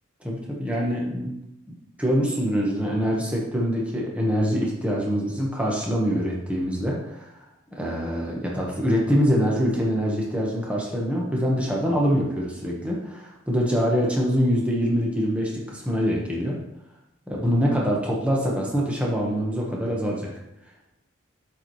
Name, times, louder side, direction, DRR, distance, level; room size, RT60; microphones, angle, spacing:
voice 1, 0.2-1.3 2.0-7.4 7.8-16.6 17.3-20.3, equal, 5° right, -3 dB, 1.1 m, -24 dB
7.6 x 4.5 x 3.1 m, 0.87 s
head